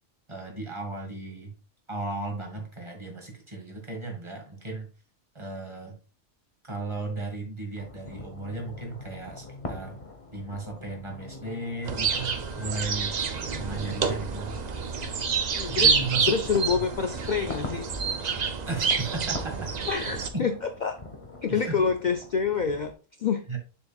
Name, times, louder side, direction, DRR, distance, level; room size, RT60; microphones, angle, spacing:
voice 1, 0.3-1.6 1.9-4.9 5.4-6.0 6.6-10.0 10.3-13.2 13.5-14.6 15.6-16.4 18.7-19.9 21.5-21.8 23.5-23.6, right 3 dB, 20° right, 1 dB, 1.8 m, -35 dB
sound 1, 7.8-22.9, left 2 dB, 25° left, 1.0 m, -43 dB
sound 2, 11.8-20.3, right 5 dB, 45° right, 0.6 m, -28 dB
voice 2, 15.5-16.0 16.3-17.9 19.9-20.6 20.8-21.0 21.4-22.9 23.2-23.4, left 6 dB, 65° left, 7 dB, 0.4 m, -27 dB
6.8 x 6.6 x 2.4 m, 0.35 s
omnidirectional pair, 1.4 m